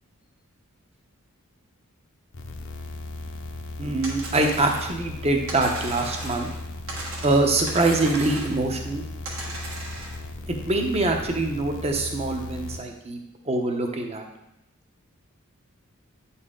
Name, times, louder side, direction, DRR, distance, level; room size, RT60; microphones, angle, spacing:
sound 1, 2.3-12.8, left 2 dB, 60° left, 0.7 m, -37 dB
voice 1, 3.8-6.5 7.2-9.0 10.5-13.2 13.4-14.2, right 2 dB, 30° right, 3 dB, 0.8 m, -24 dB
sound 2, 4.0-5.0 5.5-6.6 6.9-8.6 9.2-10.2, right 2 dB, 65° right, 1.5 m, -36 dB
9.0 x 4.2 x 3.7 m, 0.87 s
head